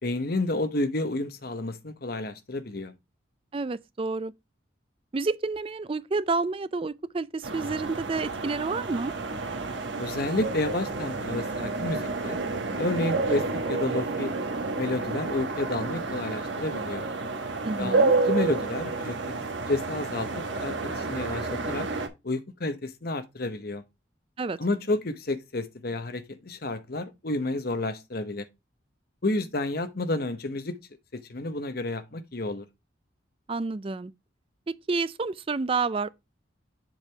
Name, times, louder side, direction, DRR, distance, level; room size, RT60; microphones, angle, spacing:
voice 1, 0.0-2.9 10.0-12.4 12.8-14.3 14.7-17.1 17.8-18.0 18.2-19.2 19.7-21.9 22.2-23.8 24.6-28.5 29.2-30.7 31.1-32.7, left 2 dB, 50° left, 0.9 m, -30 dB
voice 2, 3.5-4.3 5.1-9.1 17.6-18.2 24.4-24.6 33.5-34.1 34.9-36.1, right 3 dB, 30° right, 0.4 m, -29 dB
sound 1, 7.4-22.1, right 3 dB, 70° right, 1.3 m, -30 dB
7.3 x 5.4 x 3.4 m
head